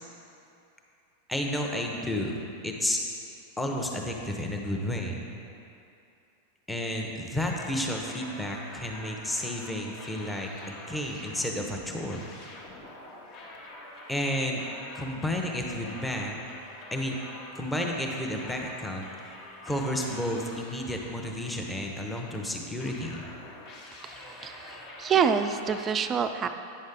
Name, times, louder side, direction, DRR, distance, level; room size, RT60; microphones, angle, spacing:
voice 1, 1.3-3.0 3.6-5.2 6.7-12.2 14.1-14.6 14.9-16.3 16.9-17.2 17.6-19.0 19.6-23.2, left 1 dB, 5° left, 0 dB, 0.8 m, -31 dB
sound 1, 7.4-22.4 22.8-25.9, left 2 dB, 40° left, 1.1 m, -46 dB
voice 2, 24.0-26.5, right 7 dB, 25° right, 8 dB, 0.4 m, -27 dB
9.1 x 6.5 x 3.7 m, 2.7 s
figure-of-eight pair, 90°, 0 cm